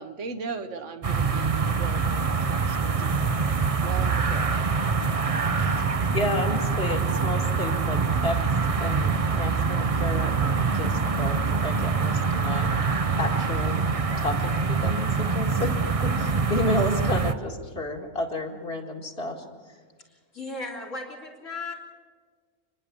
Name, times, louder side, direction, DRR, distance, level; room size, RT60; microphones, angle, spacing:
voice 1, 0.0-5.1, right 5 dB, 70° right, 8 dB, 1.5 m, -39 dB
sound 1, 1.0-17.3, right 5 dB, 35° right, 0.6 m, -25 dB
voice 2, 5.6-8.4 8.8-12.7 13.2-13.8 14.2-15.7 16.0-19.4, left 1 dB, 50° left, 2 dB, 2.3 m, -31 dB
voice 3, 20.1-21.7, left 2 dB, 75° left, -1 dB, 3.7 m, -36 dB
28.5 x 11.0 x 8.4 m, 1.5 s
omnidirectional pair, 1.3 m